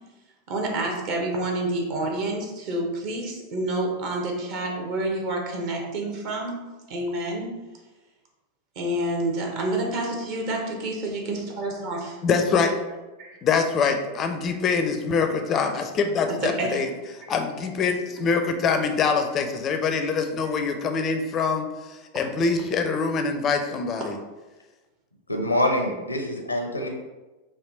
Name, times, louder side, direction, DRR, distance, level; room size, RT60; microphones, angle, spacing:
voice 1, 0.5-6.6 6.9-7.5 8.8-12.2 13.2-13.4 16.4-16.8 22.9-23.0 24.0-24.2 25.7-25.8, right 1 dB, 45° right, 1 dB, 0.8 m, -28 dB
voice 2, 12.2-12.7 13.4-16.9 17.3-24.2, left 5 dB, 30° left, 6 dB, 0.4 m, -24 dB
voice 3, 25.3-26.9, left 1 dB, 85° left, 3 dB, 0.6 m, -25 dB
3.4 x 2.7 x 3.8 m, 1.2 s
figure-of-eight pair, 90°, 0 cm